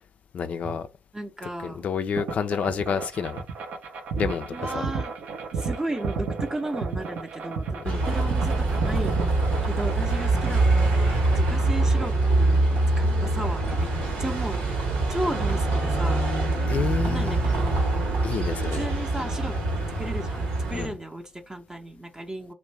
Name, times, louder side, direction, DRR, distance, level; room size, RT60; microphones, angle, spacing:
voice 1, 0.3-0.9 1.6-3.4 4.2-4.5 4.7-4.9 7.8-8.0 16.7-17.4 18.2-18.9 20.7-20.9, left 6 dB, 55° left, 0.3 m, -29 dB
voice 2, 1.1-1.8 4.5-5.1 5.5-9.2 9.6-13.9 14.2-17.9 18.7-19.6 20.0-22.5, right 1 dB, 20° right, 0.6 m, -35 dB
sound 1, 2.2-11.1, right 4 dB, 65° right, 0.5 m, -32 dB
Bus, 7.8-20.9, right 2 dB, 80° right, 0.9 m, -24 dB
2.5 x 2.1 x 3.1 m
hypercardioid pair, 45°, 3 cm